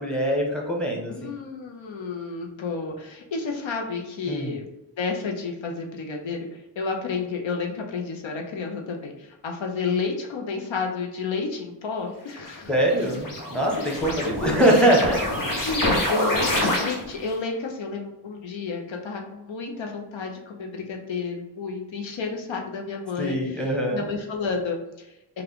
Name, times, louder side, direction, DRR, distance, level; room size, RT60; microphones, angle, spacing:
voice 1, 0.0-1.3 4.3-4.5 12.7-15.2 23.2-24.0, right 1 dB, ahead, -1 dB, 1.1 m, -23 dB
voice 2, 1.1-4.7 5.0-12.7 13.7-14.5 15.6-25.4, left 4 dB, 75° left, 2 dB, 0.7 m, -31 dB
sound 1, 12.3-17.3, left 1 dB, 45° left, 1.1 m, -27 dB
3.3 x 2.4 x 3.5 m, 0.90 s
cardioid pair, 45°, 46 cm